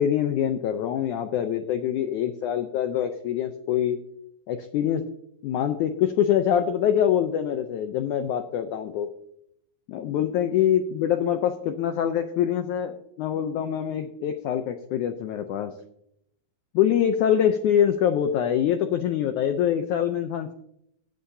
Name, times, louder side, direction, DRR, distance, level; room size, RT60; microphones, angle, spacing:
voice 1, 0.0-4.0 4.5-5.0 5.4-9.1 9.9-15.7 16.7-20.5, left 9 dB, 85° left, 7 dB, 1.7 m, -24 dB
18.0 x 8.5 x 2.7 m, 0.74 s
omnidirectional pair, 4.3 m